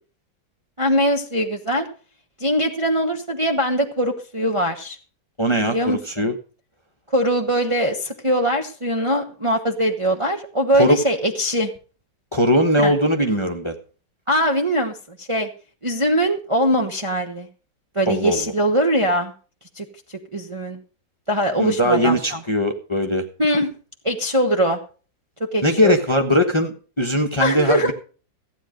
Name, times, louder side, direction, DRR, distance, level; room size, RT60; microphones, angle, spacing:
voice 1, 0.8-1.9 2.4-5.0 5.6-6.3 7.1-11.7 12.8-12.9 14.3-15.5 15.8-17.5 17.9-19.3 19.7-20.8 21.3-22.4 23.4-23.7 24.0-24.8 25.5-25.9 27.4-27.9, equal, 20° right, 3 dB, 0.9 m, -21 dB
voice 2, 5.4-6.3 10.7-11.0 12.3-13.7 18.1-18.5 21.6-23.2 25.6-27.9, equal, 20° left, 4 dB, 1.1 m, -20 dB
15.5 x 9.2 x 5.2 m, 0.38 s
omnidirectional pair, 2.0 m